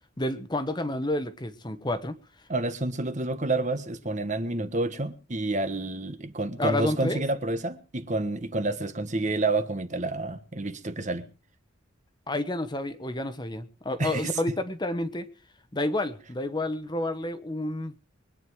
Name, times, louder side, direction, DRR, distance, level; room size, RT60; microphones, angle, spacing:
voice 1, 0.2-2.2 6.6-7.2 12.3-15.3 15.7-18.0, left 1 dB, 20° left, 1.2 m, -30 dB
voice 2, 2.5-11.3 14.0-14.3, right 2 dB, 40° right, 1.3 m, -29 dB
23.0 x 9.7 x 4.8 m
head